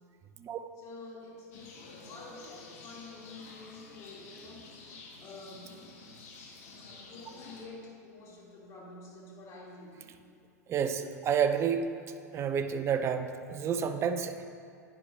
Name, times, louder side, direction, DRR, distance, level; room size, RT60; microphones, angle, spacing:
voice 1, 0.8-4.7 5.2-5.8 7.0-10.1, left 3 dB, 40° left, -3 dB, 2.3 m, -48 dB
sound 1, 1.5-7.7, left 3 dB, 60° left, 1.3 m, -50 dB
voice 2, 10.7-11.9 12.3-14.4, right 7 dB, 30° right, 9 dB, 0.6 m, -30 dB
10.5 x 9.7 x 2.4 m, 2.3 s
hypercardioid pair, 90°, 9 cm